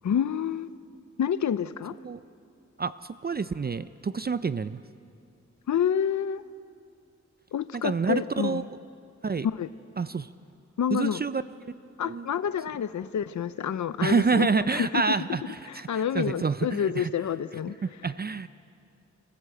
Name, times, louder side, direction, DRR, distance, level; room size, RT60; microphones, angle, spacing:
voice 1, 0.0-0.7 1.2-1.9 5.7-6.4 7.5-8.6 9.4-9.7 10.8-11.2 12.0-15.0 15.7-17.7, left 8 dB, 80° left, 0.6 m, -28 dB
voice 2, 2.8-4.8 7.7-8.6 9.2-9.5 10.0-10.3 10.9-11.4 11.7-12.3 14.0-17.1 18.0-18.5, right 5 dB, 35° right, 0.4 m, -28 dB
29.5 x 15.0 x 7.8 m
wide cardioid pair, 115°, 29 cm